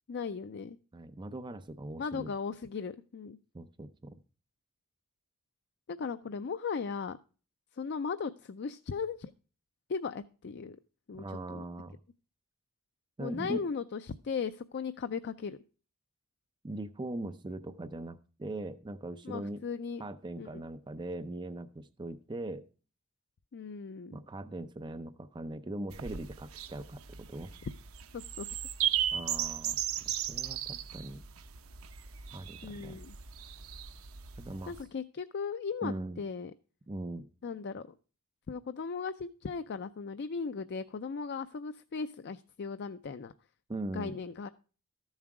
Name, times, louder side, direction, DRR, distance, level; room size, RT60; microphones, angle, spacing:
voice 1, 0.1-0.8 2.0-3.4 5.9-7.2 7.7-9.3 9.9-10.8 11.1-11.6 13.2-15.6 19.2-20.0 20.4-20.5 23.5-24.2 28.1-28.5 32.6-33.1 34.7-36.5 37.4-37.9 38.5-43.3 43.9-44.5, left 5 dB, 55° left, 11 dB, 0.4 m, -37 dB
voice 2, 0.9-2.3 3.5-4.2 11.2-12.0 13.2-13.6 16.6-19.6 20.0-22.6 24.1-27.5 29.1-29.8 30.3-31.2 32.3-33.0 34.4-34.7 35.8-36.2 36.9-37.3 43.7-44.2, right 2 dB, 20° right, 10 dB, 0.5 m, -40 dB
sound 1, 25.9-34.8, right 10 dB, 75° right, 0.7 m, -36 dB
13.5 x 7.3 x 4.8 m, 0.36 s
head